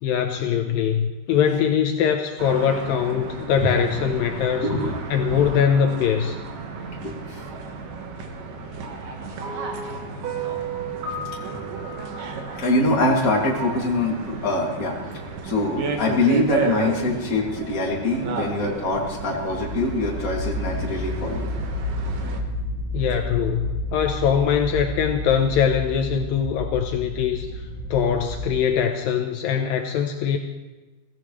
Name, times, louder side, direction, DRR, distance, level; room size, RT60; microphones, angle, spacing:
voice 1, 0.0-4.7 5.1-6.4 22.9-27.6 27.9-30.4, left 8 dB, 75° left, 4 dB, 2.4 m, -22 dB
sound 1, 2.4-22.4, right 4 dB, 65° right, 2.9 m, -33 dB
voice 2, 3.6-3.9 4.6-4.9 7.0-7.4 12.5-15.0 15.4-21.5, left 2 dB, 25° left, -2 dB, 2.4 m, -24 dB
sound 2, 9.4-13.8, right 4 dB, 85° right, 4.0 m, -34 dB
sound 3, 18.8-28.7, left 1 dB, 40° left, 4.8 m, -31 dB
22.5 x 15.5 x 3.2 m, 1.2 s
omnidirectional pair, 4.4 m